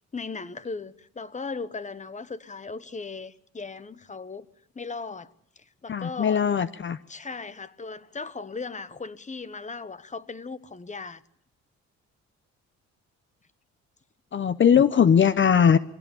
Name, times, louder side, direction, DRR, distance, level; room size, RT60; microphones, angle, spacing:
voice 1, 0.1-4.5 4.7-6.5 7.1-11.2, left 4 dB, 25° left, 1.0 m, -37 dB
voice 2, 5.9-7.0 14.3-15.8, left 7 dB, 40° left, 0.7 m, -20 dB
23.0 x 16.5 x 7.0 m
cardioid pair, 90°, 30 cm